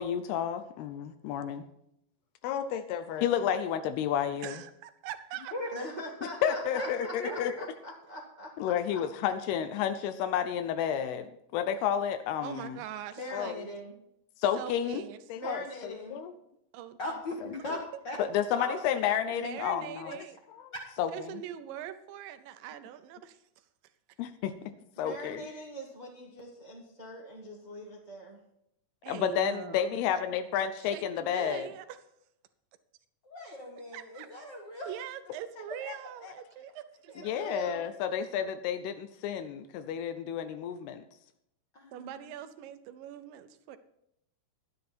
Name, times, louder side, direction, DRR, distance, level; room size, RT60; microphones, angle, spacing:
voice 1, 0.0-1.7 2.4-4.6 6.4-7.5 8.6-12.8 13.3-13.7 14.4-15.0 15.3-16.3 18.2-20.3 20.6-20.7 21.0-21.4 24.2-25.4 29.1-31.7 36.2-36.3 37.2-41.0, left 9 dB, 85° left, 9 dB, 2.7 m, -31 dB
voice 2, 4.4-5.5 12.4-13.5 14.6-15.2 16.7-17.0 17.7-17.8 19.3-20.4 21.1-23.4 29.0-30.0 30.8-32.0 33.9-34.4 34.9-37.4 41.9-43.8, right 11 dB, 75° right, 11 dB, 2.1 m, -42 dB
voice 3, 5.7-9.0 13.1-13.9 15.3-16.3 25.0-28.4 37.1-37.9, equal, 25° right, -2 dB, 1.0 m, -42 dB
voice 4, 6.8-7.5 17.0-18.2 18.5-18.8 20.7-20.8 33.2-34.9 41.7-42.3, left 1 dB, 70° left, 0 dB, 1.0 m, -38 dB
12.5 x 10.5 x 4.4 m, 0.77 s
omnidirectional pair, 4.5 m